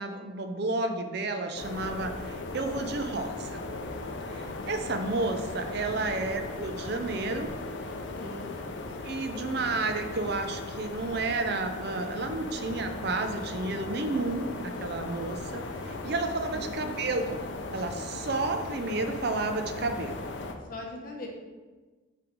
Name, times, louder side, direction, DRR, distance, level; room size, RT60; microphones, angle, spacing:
voice 1, 0.0-3.7 4.3-7.5 9.0-17.4 17.7-20.2, right 3 dB, 55° right, 6 dB, 0.5 m, -31 dB
sound 1, 1.6-20.5, left 3 dB, 65° left, 0.6 m, -37 dB
voice 2, 6.0-6.4 8.1-8.5 16.5-17.0 20.7-21.3, left 2 dB, 45° left, -1 dB, 1.1 m, -41 dB
5.8 x 3.4 x 5.2 m, 1.3 s
head